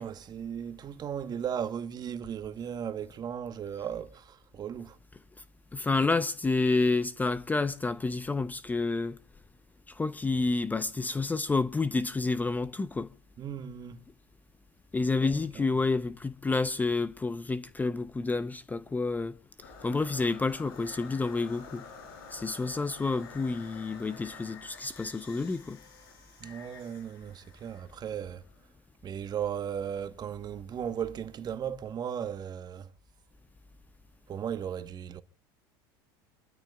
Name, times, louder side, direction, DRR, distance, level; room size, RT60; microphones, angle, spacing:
voice 1, 0.0-5.0 13.4-14.0 15.2-15.7 26.4-28.4 29.0-32.9 34.3-35.2, right 8 dB, 35° right, 1.2 m, -36 dB
voice 2, 5.7-9.2 9.9-13.1 14.9-19.4 19.8-21.8 22.3-25.8, left 3 dB, 15° left, 0.7 m, -29 dB
sound 1, 19.6-28.6, left 5 dB, 90° left, 5.7 m, -50 dB
29.0 x 13.0 x 2.3 m
supercardioid pair, 110°, 12 cm